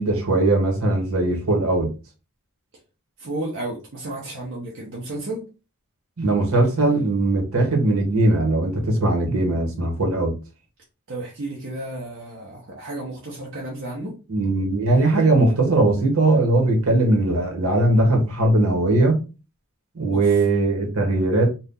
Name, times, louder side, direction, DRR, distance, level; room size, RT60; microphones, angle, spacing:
voice 1, 0.0-1.9 6.2-10.3 14.3-19.2 19.9-21.5, right 2 dB, 80° right, 1.2 m, -19 dB
voice 2, 3.2-5.4 11.1-14.1 20.1-20.3, right 2 dB, 60° right, 0.8 m, -32 dB
2.7 x 2.4 x 3.6 m
head